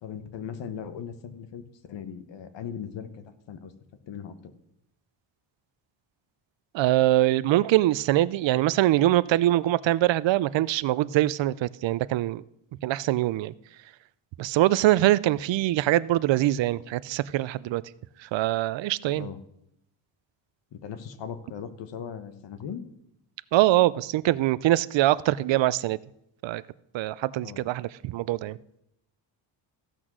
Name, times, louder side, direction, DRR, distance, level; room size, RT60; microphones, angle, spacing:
voice 1, 0.0-3.7 4.1-4.5 19.2-19.4 20.7-22.8 27.4-27.6, left 7 dB, 65° left, 1.2 m, -38 dB
voice 2, 6.7-12.4 12.8-13.5 14.4-17.8 18.2-19.3 23.5-26.0 26.4-26.6 26.9-28.6, right 15 dB, 70° right, 0.5 m, -23 dB
15.5 x 6.2 x 6.1 m
wide cardioid pair, 155°, 47 cm